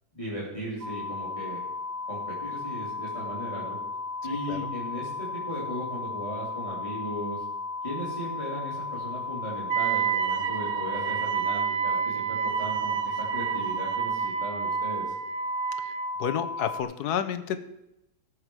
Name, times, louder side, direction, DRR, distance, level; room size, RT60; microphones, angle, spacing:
voice 1, 0.1-1.6 2.1-3.8 4.2-7.4 7.8-15.1, equal, 20° left, -7 dB, 3.1 m, -37 dB
sound 1, 0.8-16.8, left 4 dB, 85° right, 1.6 m, -35 dB
Wind instrument woodwind instrument, 9.7-16.1, right 9 dB, 65° right, 0.7 m, -29 dB
voice 2, 16.2-17.6, left 9 dB, 80° left, 11 dB, 1.3 m, -30 dB
17.0 x 7.4 x 4.8 m, 0.87 s
omnidirectional pair, 1.7 m